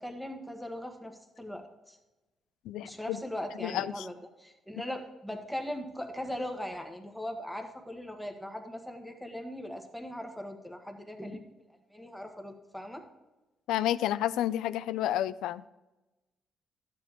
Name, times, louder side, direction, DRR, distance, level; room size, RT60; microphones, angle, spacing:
voice 1, 0.0-2.0 2.8-11.4 11.9-13.0, left 1 dB, ahead, 4 dB, 1.4 m, -39 dB
voice 2, 2.7-3.2 3.6-4.1 13.7-15.6, left 12 dB, 90° left, 17 dB, 0.3 m, -30 dB
12.0 x 8.9 x 3.0 m, 1.0 s
cardioid pair, 90°, 0 cm